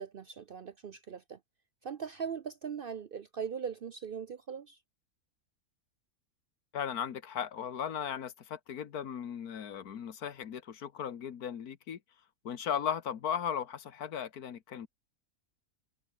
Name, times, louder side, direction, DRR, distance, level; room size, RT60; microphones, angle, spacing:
voice 1, 0.0-1.4 1.8-4.8, right 7 dB, 55° right, 0.6 m, -40 dB
voice 2, 6.7-12.0 12.5-14.9, left 8 dB, 85° left, 1.8 m, -37 dB
omnidirectional pair, 1.6 m